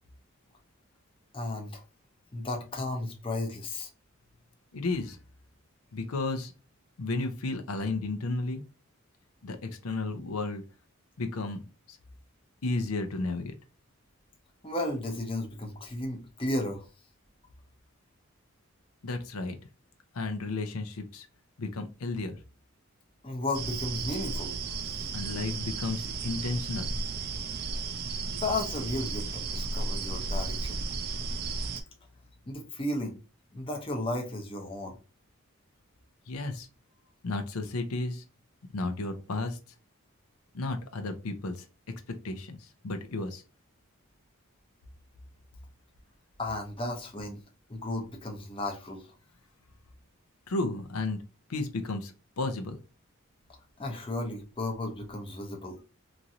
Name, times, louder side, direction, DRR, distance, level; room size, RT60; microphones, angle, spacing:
voice 1, 1.3-1.8 2.3-3.9 14.6-16.9 23.2-24.6 28.3-30.8 32.5-33.2 33.5-35.0 46.4-47.4 47.7-49.1 53.8-55.8, left 2 dB, 25° left, 0.7 m, -34 dB
voice 2, 4.7-5.2 5.9-6.5 7.0-8.6 9.4-10.6 11.2-11.6 11.9-12.0 12.6-13.6 19.0-19.6 20.1-21.3 21.6-22.4 25.1-26.9 36.3-36.7 37.2-38.2 38.7-39.6 40.5-41.7 42.1-43.4 50.5-51.2 51.5-52.8, left 2 dB, 85° left, 0.6 m, -33 dB
sound 1, 23.5-31.8, right 4 dB, 45° right, 0.4 m, -34 dB
3.0 x 2.6 x 2.5 m
head